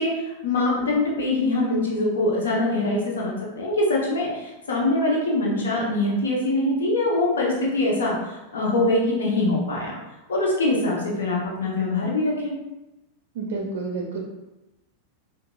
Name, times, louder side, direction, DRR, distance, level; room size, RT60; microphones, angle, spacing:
voice 1, 0.0-9.9 10.3-12.5, left 2 dB, 65° left, -3 dB, 0.7 m, -23 dB
voice 2, 13.3-14.2, right 3 dB, 55° right, 0 dB, 0.4 m, -29 dB
4.6 x 2.3 x 2.3 m, 0.99 s
figure-of-eight pair, 90°, 0 cm